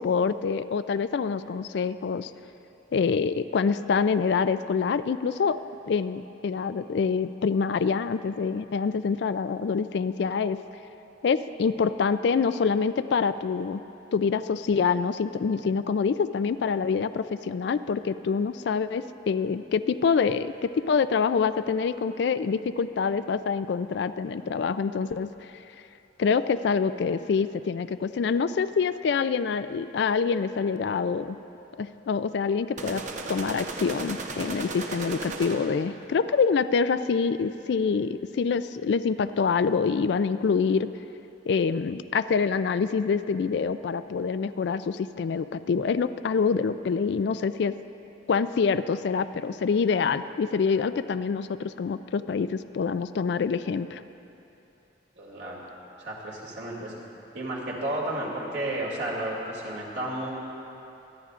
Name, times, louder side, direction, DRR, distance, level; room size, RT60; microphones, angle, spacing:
voice 1, 0.0-2.3 2.9-5.6 5.9-10.6 11.2-13.8 14.1-25.3 26.2-31.4 31.8-33.0 33.3-40.9 41.5-47.8 48.3-54.0, left 5 dB, 60° left, 12 dB, 0.3 m, -26 dB
sound 1, 32.8-35.9, right 3 dB, 40° right, 0.7 m, -36 dB
voice 2, 55.2-55.6 56.0-56.9 57.3-60.3, right 1 dB, 60° right, -4 dB, 2.4 m, -32 dB
25.5 x 10.5 x 2.5 m, 2.9 s
head